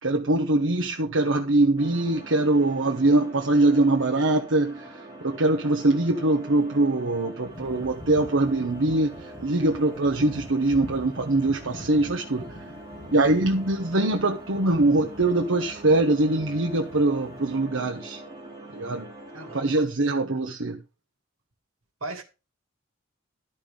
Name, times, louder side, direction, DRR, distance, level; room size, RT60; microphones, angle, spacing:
voice 1, 0.0-12.6 13.1-18.2 18.7-19.1 19.5-20.8, right 2 dB, 70° right, 1.1 m, -23 dB
sound 1, 1.8-19.7, right 1 dB, 20° right, 3.8 m, -43 dB
sound 2, 7.4-17.6, left 1 dB, 25° left, 1.9 m, -45 dB
voice 2, 19.3-19.9 22.0-22.2, right 2 dB, 85° right, 2.2 m, -36 dB
12.0 x 5.7 x 5.3 m
head